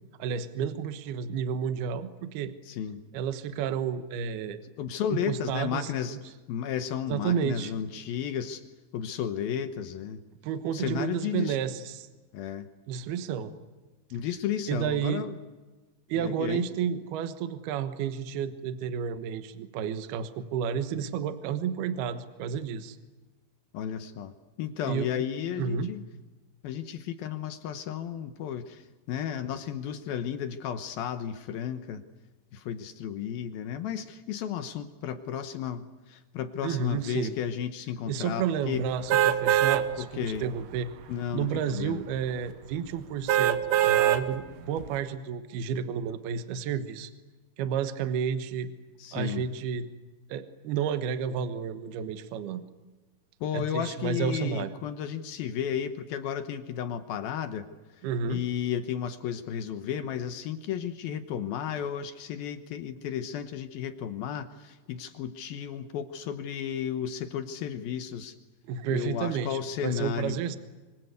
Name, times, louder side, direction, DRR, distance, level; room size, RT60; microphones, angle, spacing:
voice 1, 0.2-2.5 3.1-4.6 5.1-6.2 7.1-7.7 10.4-12.1 12.9-13.5 14.7-15.3 16.1-23.0 24.9-25.3 25.6-25.9 36.6-37.3 38.1-40.9 41.3-47.1 47.6-48.7 49.1-49.9 50.3-52.6 53.5-54.7 58.0-58.4 68.7-70.6, right 7 dB, 65° right, 10 dB, 2.9 m, -31 dB
voice 2, 2.7-3.0 4.8-6.2 6.5-8.6 8.9-10.2 10.7-11.6 12.3-12.7 14.1-15.4 16.1-16.6 23.7-26.1 26.6-32.0 32.5-38.9 40.0-40.5 41.1-42.0 49.0-49.4 53.4-57.6 58.3-68.4 68.9-70.4, left 9 dB, 70° left, 10 dB, 2.3 m, -33 dB
sound 1, 39.1-39.8 40.4-40.5 43.3-44.2 44.8-44.9, right 12 dB, 90° right, 3.7 m, -22 dB
26.0 x 25.0 x 8.1 m, 1.2 s
omnidirectional pair, 5.5 m